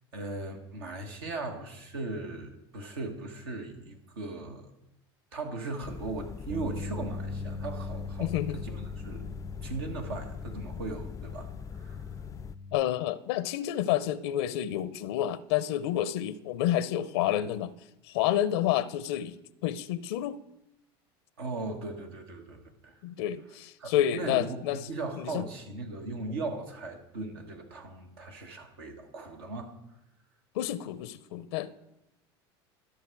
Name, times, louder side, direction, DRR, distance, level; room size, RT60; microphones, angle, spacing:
voice 1, 0.1-4.7 5.3-9.2 9.6-12.0 21.4-23.0 23.8-29.7, right 3 dB, 85° right, 1.6 m, -38 dB
sound 1, 5.8-12.6, left 7 dB, 25° left, 0.3 m, -42 dB
Bass guitar, 6.5-12.7, left 3 dB, 60° right, 1.6 m, -40 dB
voice 2, 8.2-8.6 12.7-17.7 18.0-19.4 19.6-20.4 23.0-24.9 25.2-25.5 30.5-31.7, left 12 dB, 80° left, 0.5 m, -29 dB
12.5 x 6.5 x 4.6 m
hypercardioid pair, 90°, 13 cm